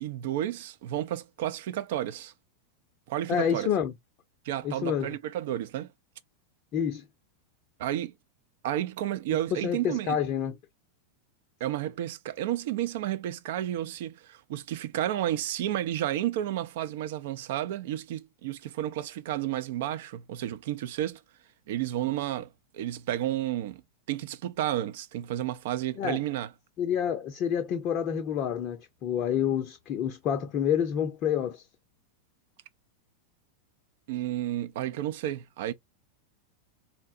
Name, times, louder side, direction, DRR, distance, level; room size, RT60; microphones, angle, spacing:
voice 1, 0.0-2.3 3.1-3.7 4.4-5.9 7.8-8.1 8.6-10.2 11.6-21.2 21.7-23.8 24.1-26.5 34.1-35.7, right 12 dB, 55° right, 0.4 m, -31 dB
voice 2, 3.3-3.9 4.6-5.2 6.7-7.0 9.6-10.5 26.0-26.2 26.8-31.6, left 8 dB, 35° left, 0.5 m, -28 dB
4.0 x 2.1 x 2.5 m
figure-of-eight pair, 90°, 0 cm